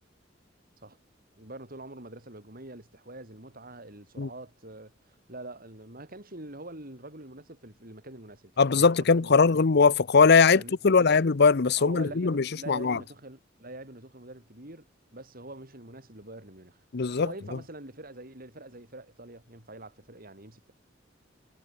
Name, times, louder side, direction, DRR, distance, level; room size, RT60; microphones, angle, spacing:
voice 1, 1.4-9.7 10.6-11.1 11.8-16.8 17.2-20.7, right 2 dB, 50° right, 5.8 m, -45 dB
voice 2, 8.6-13.0 16.9-17.3, left 5 dB, 60° left, 0.7 m, -21 dB
head